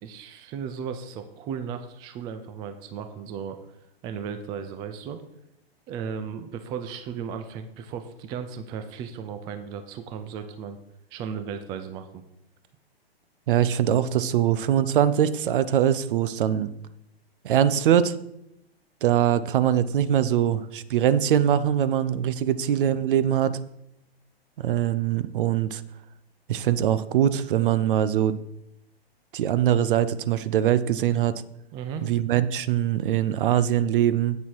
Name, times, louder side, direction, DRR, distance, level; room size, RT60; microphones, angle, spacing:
voice 1, 0.0-3.6 4.0-5.2 5.9-10.8 11.1-12.2 31.7-32.1, right 7 dB, 15° right, 9 dB, 0.3 m, -35 dB
voice 2, 13.5-16.7 17.4-18.2 19.0-23.6 24.6-25.8 26.5-28.4 29.3-31.3 32.0-34.4, right 10 dB, 55° right, 15 dB, 0.6 m, -22 dB
8.4 x 6.8 x 4.6 m, 0.81 s
hypercardioid pair, 115°, 31 cm